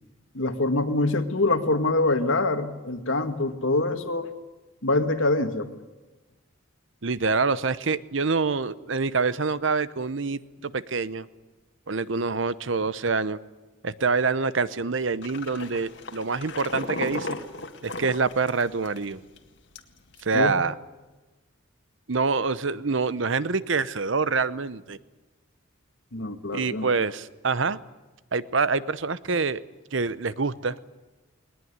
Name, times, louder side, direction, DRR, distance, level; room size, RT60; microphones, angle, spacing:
voice 1, 0.3-4.3 4.8-5.7 20.3-20.5 26.1-26.9, left 2 dB, 80° left, 8 dB, 2.0 m, -24 dB
voice 2, 7.0-11.3 11.9-13.4 13.8-17.4 17.8-19.2 20.2-20.7 22.1-25.0 26.5-27.8 28.3-29.6 29.9-30.8, right 4 dB, 70° right, 16 dB, 0.9 m, -26 dB
sound 1, 15.2-19.0 19.4-19.5 19.8-20.2, left 2 dB, 60° left, 2.0 m, -35 dB
20.0 x 20.0 x 9.5 m, 1.2 s
head